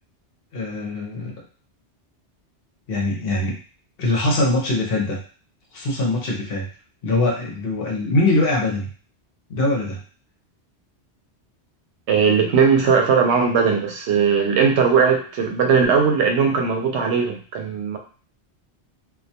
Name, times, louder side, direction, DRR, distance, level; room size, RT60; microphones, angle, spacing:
voice 1, 0.5-1.3 2.9-3.6 4.0-5.2 5.7-6.7 7.0-8.9 9.5-10.0, left 2 dB, 60° left, -1 dB, 0.9 m, -22 dB
voice 2, 12.1-18.0, right 6 dB, 80° right, 3 dB, 0.9 m, -18 dB
2.3 x 2.2 x 2.7 m, 0.41 s
omnidirectional pair, 1.1 m